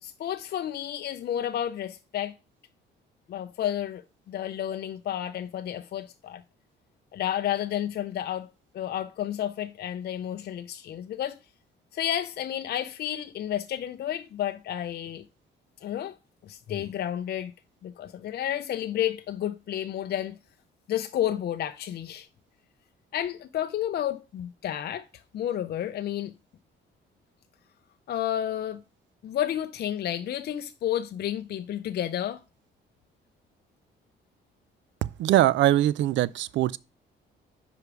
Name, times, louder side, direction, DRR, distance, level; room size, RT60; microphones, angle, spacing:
voice 1, 0.0-2.3 3.3-6.4 7.1-8.5 8.7-11.4 11.9-15.2 15.8-16.1 16.4-17.5 17.8-20.4 20.9-22.3 23.1-25.1 25.3-26.3 28.1-28.8 29.2-32.4, left 11 dB, 55° left, 0.4 m, -31 dB
voice 2, 35.0-36.8, right 14 dB, 70° right, 0.4 m, -22 dB
5.0 x 4.7 x 4.8 m
cardioid pair, 90°, 20 cm